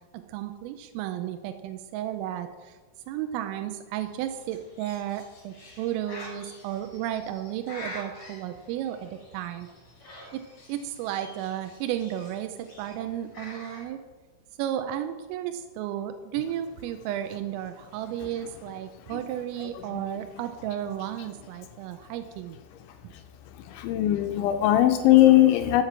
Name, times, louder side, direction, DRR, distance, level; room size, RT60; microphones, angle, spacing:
voice 1, 0.1-2.8 3.1-9.7 10.3-10.4 10.7-14.0 14.6-22.6 23.0-23.1, right 11 dB, 90° right, 8 dB, 3.4 m, -33 dB
Bird, 4.0-13.9, left 1 dB, 30° left, 4.8 m, -47 dB
voice 2, 23.6-25.8, left 14 dB, 80° left, 6 dB, 2.8 m, -19 dB
12.5 x 8.2 x 7.4 m, 1.3 s
omnidirectional pair, 5.8 m